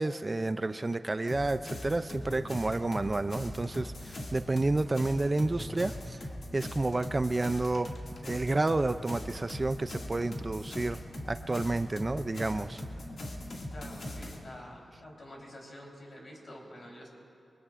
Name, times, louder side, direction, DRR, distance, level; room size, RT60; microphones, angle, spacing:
voice 1, 0.0-6.3 6.5-7.9 8.2-11.0 11.3-12.8, right 2 dB, 30° right, 11 dB, 0.4 m, -30 dB
sound 1, 1.3-14.4, left 1 dB, 65° left, 2.1 m, -40 dB
voice 2, 13.7-17.1, left 1 dB, 45° left, -2 dB, 3.7 m, -48 dB
24.5 x 20.5 x 2.5 m, 2.6 s
wide cardioid pair, 90°, 0 cm